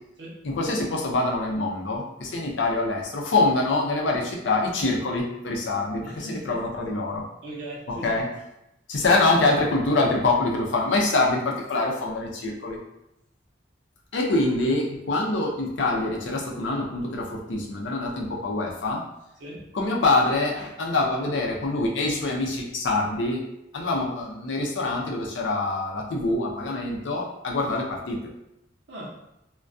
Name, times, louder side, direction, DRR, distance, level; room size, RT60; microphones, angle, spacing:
voice 1, 0.4-7.2 8.0-8.3 8.9-12.8 14.1-19.0 19.7-23.4 23.7-28.2, left 2 dB, 75° left, 0 dB, 0.5 m, -25 dB
voice 2, 6.0-6.5 7.4-8.1 19.4-19.7 28.9-29.1, right 1 dB, 65° right, -5 dB, 0.6 m, -38 dB
2.2 x 2.2 x 2.5 m, 0.85 s
head